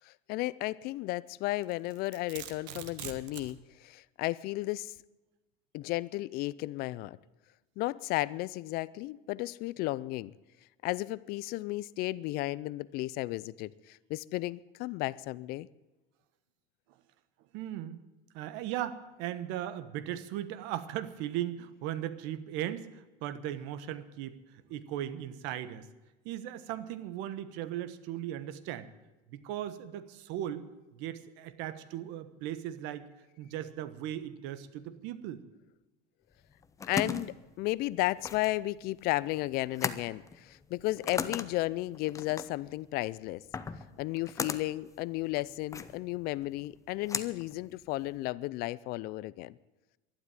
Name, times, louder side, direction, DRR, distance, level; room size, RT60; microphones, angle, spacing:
voice 1, 0.1-4.9 5.7-7.2 7.8-10.3 10.8-15.7 36.9-43.4 44.0-49.5, left 18 dB, 50° left, 0.5 m, -34 dB
Domestic sounds home sounds, 1.6-3.5, right 10 dB, 85° right, 1.6 m, -43 dB
voice 2, 17.5-18.0 18.3-25.9 26.2-28.9 29.3-30.7 30.9-33.0 33.4-35.4, right 12 dB, 60° right, 1.3 m, -38 dB
sound 1, 36.4-48.3, left 5 dB, 15° left, 0.7 m, -39 dB
12.0 x 11.5 x 8.9 m
cardioid pair, 145°, 21 cm